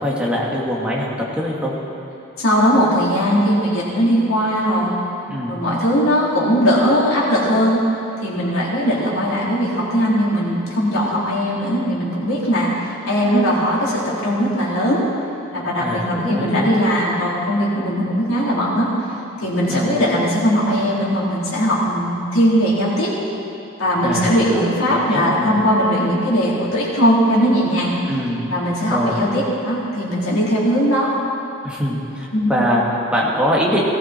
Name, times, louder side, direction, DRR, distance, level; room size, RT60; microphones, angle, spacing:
voice 1, 0.0-1.7 5.3-5.6 15.8-16.7 19.7-19.9 24.0-24.6 24.9-25.6 28.1-28.5 28.9-29.3 31.6-33.8, equal, 5° right, -5 dB, 2.2 m, -23 dB
voice 2, 2.4-5.0 5.5-7.8 8.2-15.0 15.5-18.9 19.4-23.1 23.8-27.9 28.5-31.1 32.3-32.5, equal, 75° left, -7 dB, 4.2 m, -19 dB
18.0 x 15.0 x 4.5 m, 2.8 s
head